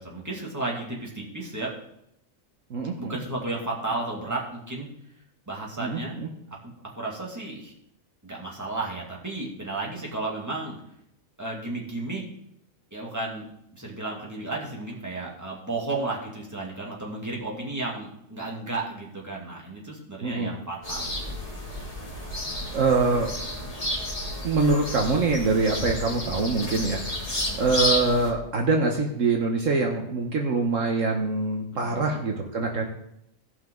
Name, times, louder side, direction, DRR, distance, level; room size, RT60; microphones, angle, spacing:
voice 1, 0.0-1.7 3.0-4.9 5.5-6.2 6.6-7.7 8.2-10.8 11.4-12.3 12.9-13.5 13.7-21.2 27.5-27.8 31.7-32.2, right 2 dB, 10° right, -4 dB, 2.4 m, -33 dB
voice 2, 2.7-3.2 5.8-6.3 20.2-20.5 22.7-23.3 24.4-32.9, right 3 dB, 65° right, 2 dB, 1.4 m, -24 dB
sound 1, 20.8-28.3, left 1 dB, 25° left, 2.6 m, -31 dB
17.5 x 5.8 x 3.8 m, 0.77 s
omnidirectional pair, 1.5 m